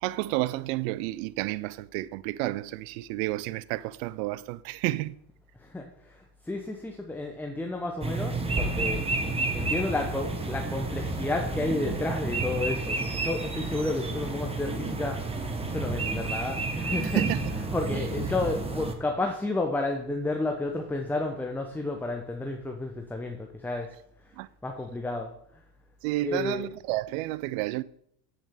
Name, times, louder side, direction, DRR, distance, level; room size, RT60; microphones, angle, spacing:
voice 1, 0.0-5.1 17.1-17.5 17.9-18.0 24.4-24.5 26.0-27.8, right 18 dB, 60° right, 0.5 m, -31 dB
voice 2, 5.6-9.0 9.5-15.2 15.7-17.3 17.5-24.0 24.2-24.3 24.6-25.3 26.2-26.7, left 2 dB, 5° left, 0.6 m, -31 dB
sound 1, 8.0-18.9, right 2 dB, 10° right, 1.0 m, -30 dB
8.0 x 7.1 x 3.5 m
supercardioid pair, 100°, 49 cm